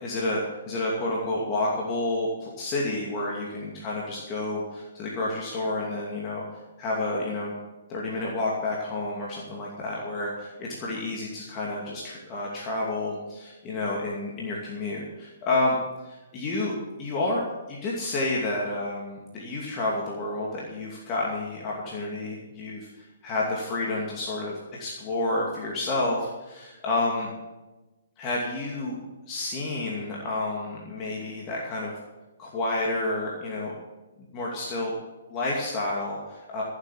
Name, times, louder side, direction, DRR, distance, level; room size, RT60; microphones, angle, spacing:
voice 1, 0.0-0.4 0.7-6.4 6.8-7.5 7.9-15.8 16.0-27.3 28.2-29.0 29.3-31.9 32.4-33.7 34.3-35.0 35.3-36.6, left 2 dB, 30° left, -4 dB, 2.5 m, -30 dB
14.0 x 7.9 x 7.2 m, 1.1 s
figure-of-eight pair, 130°, 0 cm